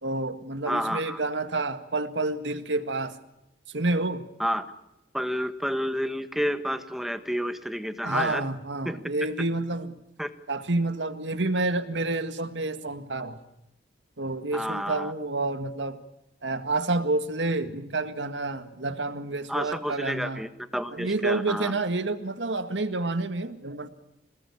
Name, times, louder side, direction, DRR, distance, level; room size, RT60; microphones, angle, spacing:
voice 1, 0.0-3.2 3.7-4.2 8.0-9.9 10.5-13.4 14.2-16.0 16.4-20.4 20.9-23.9, right 2 dB, 90° right, 1.9 m, -29 dB
voice 2, 0.7-1.2 4.4-4.6 5.1-8.4 8.8-9.0 10.2-10.3 14.5-15.1 19.5-21.7, equal, ahead, 1.4 m, -30 dB
27.5 x 19.5 x 8.6 m
head